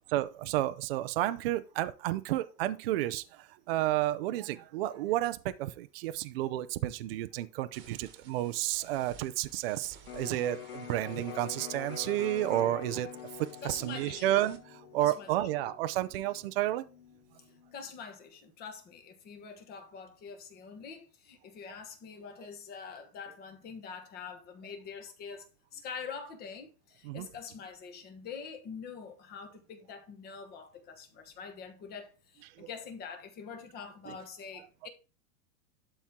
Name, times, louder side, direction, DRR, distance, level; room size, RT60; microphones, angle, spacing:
voice 1, 0.0-13.1 13.4-16.9 27.0-27.3 32.6-32.7 34.1-34.2, right 14 dB, 40° right, 0.5 m, -31 dB
sound 1, 7.7-14.6, right 7 dB, 25° right, 1.4 m, -57 dB
Electric guitar, 10.0-17.8, left 9 dB, 65° left, 1.9 m, -46 dB
voice 2, 13.6-14.4 15.0-15.4 17.4-34.9, left 6 dB, 20° left, 1.2 m, -45 dB
12.0 x 4.4 x 3.6 m
supercardioid pair, 170°, 46 cm